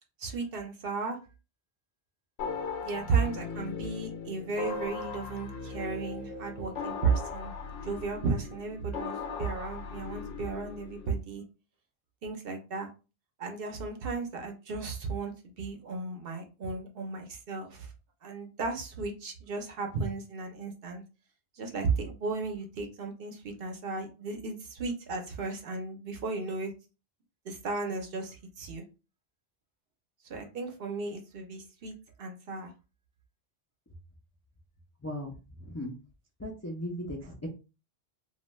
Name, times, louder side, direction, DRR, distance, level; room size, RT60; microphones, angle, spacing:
voice 1, 0.2-1.2 2.8-7.5 7.8-11.4 12.2-12.9 13.4-17.9 18.2-21.0 21.6-26.7 27.4-28.8 30.3-32.7, right 4 dB, 65° right, 4 dB, 0.8 m, -34 dB
sound 1, 2.4-11.1, left 5 dB, 90° left, 0.9 m, -38 dB
voice 2, 35.0-35.3 35.7-36.0 36.4-37.3, left 1 dB, 25° left, -2 dB, 0.3 m, -36 dB
2.4 x 2.2 x 3.0 m, 0.31 s
omnidirectional pair, 1.1 m